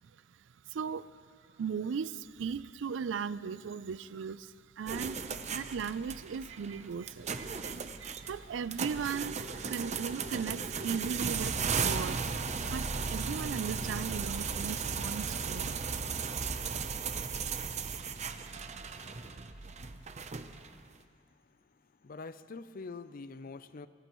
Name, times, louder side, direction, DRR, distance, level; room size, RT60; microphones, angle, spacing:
voice 1, 0.7-1.2 1.6-12.4 12.7-15.9 16.1-16.3, right 6 dB, 75° right, 0.4 m, -38 dB
sound 1, 4.9-20.8, right 5 dB, 40° right, 0.7 m, -36 dB
voice 2, 22.0-23.9, left 4 dB, 50° left, 0.5 m, -44 dB
23.5 x 18.5 x 3.1 m
head